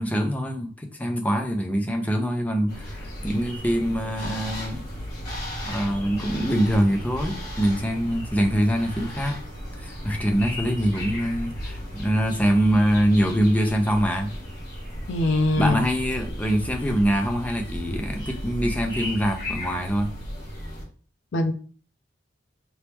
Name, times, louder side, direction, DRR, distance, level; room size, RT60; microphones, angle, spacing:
voice 1, 0.0-4.8 5.6-9.4 9.8-14.3 15.6-20.1, equal, 10° left, 4 dB, 0.6 m, -24 dB
sound 1, 2.7-20.8, equal, 50° left, 1.9 m, -35 dB
voice 2, 15.1-15.8 21.3-21.5, left 2 dB, 75° left, 7 dB, 0.5 m, -22 dB
4.0 x 3.1 x 3.4 m, 0.41 s
head